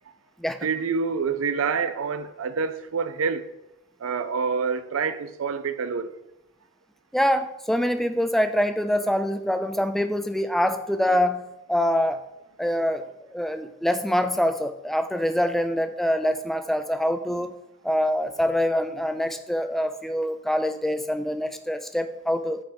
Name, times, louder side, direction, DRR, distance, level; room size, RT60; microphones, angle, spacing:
voice 1, 0.6-3.4 4.0-6.1, right 5 dB, 85° right, 0.5 m, -27 dB
voice 2, 7.1-11.4 11.7-12.2 12.6-13.1 13.3-17.6 17.8-22.6, equal, ahead, 0.3 m, -25 dB
9.2 x 3.6 x 5.2 m
head